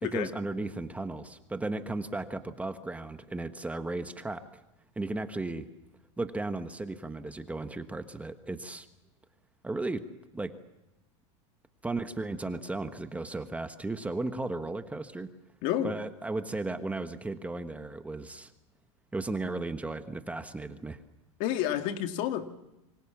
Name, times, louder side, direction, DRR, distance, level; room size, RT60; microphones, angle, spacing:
voice 1, 0.0-4.4 5.0-5.7 6.2-8.9 9.6-10.0 10.3-10.5 11.8-15.3 15.8-18.5 19.1-21.0, right 2 dB, 10° right, 8 dB, 1.4 m, -35 dB
voice 2, 15.6-15.9 21.4-22.4, left 11 dB, 55° left, 7 dB, 2.1 m, -29 dB
27.0 x 24.5 x 7.3 m, 0.96 s
supercardioid pair, 125°, 16 cm